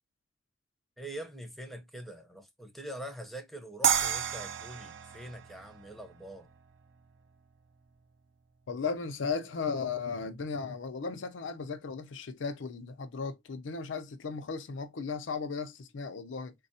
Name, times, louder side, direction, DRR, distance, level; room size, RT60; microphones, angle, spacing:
voice 1, 1.0-6.5, right 1 dB, ahead, 0.5 m, -44 dB
sound 1, 3.8-6.9, right 8 dB, 70° right, 0.4 m, -32 dB
voice 2, 8.7-16.5, left 5 dB, 90° left, 0.5 m, -36 dB
4.0 x 2.2 x 2.6 m
head